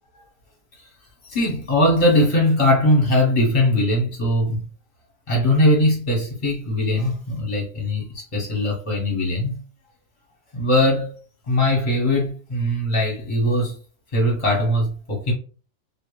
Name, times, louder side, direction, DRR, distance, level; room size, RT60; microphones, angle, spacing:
voice 1, 1.2-4.6 5.3-9.6 10.5-11.1 11.5-13.8 14.1-15.3, left 1 dB, 25° left, 0.8 m, -20 dB
2.9 x 2.4 x 3.1 m
omnidirectional pair, 2.1 m